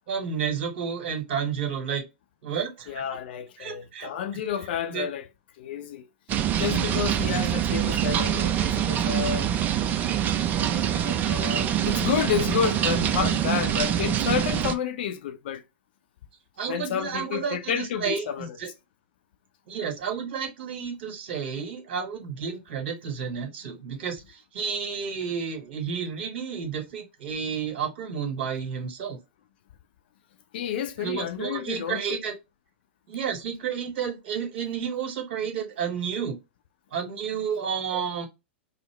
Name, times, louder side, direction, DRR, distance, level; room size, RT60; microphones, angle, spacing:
voice 1, 0.1-2.0 2.4-3.0 3.6-4.1 4.9-5.1 7.1-7.2 10.5-10.8 16.6-18.7 19.7-29.2 31.0-32.3 33.1-36.4 36.9-38.3, right 7 dB, 60° right, 1.6 m, -31 dB
voice 2, 2.9-5.2 5.6-6.1 6.6-9.5 10.6-15.6 16.7-18.6 30.5-32.1, left 8 dB, 60° left, 0.5 m, -30 dB
sound 1, 6.3-14.8, right 10 dB, 30° right, 0.5 m, -25 dB
3.7 x 2.1 x 3.2 m
figure-of-eight pair, 105°, 6 cm